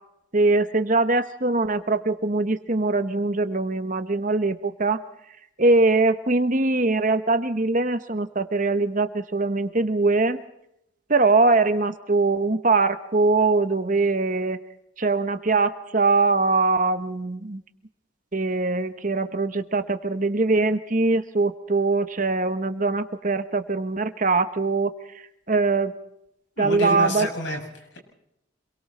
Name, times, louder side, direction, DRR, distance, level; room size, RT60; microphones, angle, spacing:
voice 1, 0.3-5.0 5.6-10.4 11.1-14.6 15.0-17.6 18.3-25.9 26.6-27.3, right 3 dB, 40° right, 10 dB, 1.1 m, -22 dB
voice 2, 26.6-28.0, left 1 dB, 55° left, 3 dB, 6.8 m, -29 dB
27.0 x 23.0 x 4.3 m, 0.80 s
head